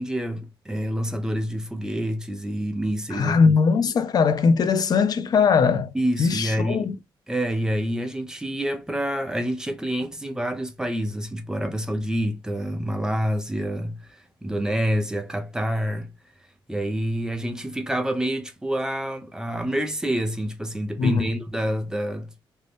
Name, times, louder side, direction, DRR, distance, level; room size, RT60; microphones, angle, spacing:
voice 1, 0.0-3.6 5.9-6.9 7.3-16.1 16.7-22.3, equal, 5° right, 0.5 m, -27 dB
voice 2, 3.1-5.9 6.2-7.0 21.0-21.3, left 5 dB, 50° left, 0.4 m, -20 dB
2.6 x 2.1 x 3.2 m
wide cardioid pair, 145°, 9 cm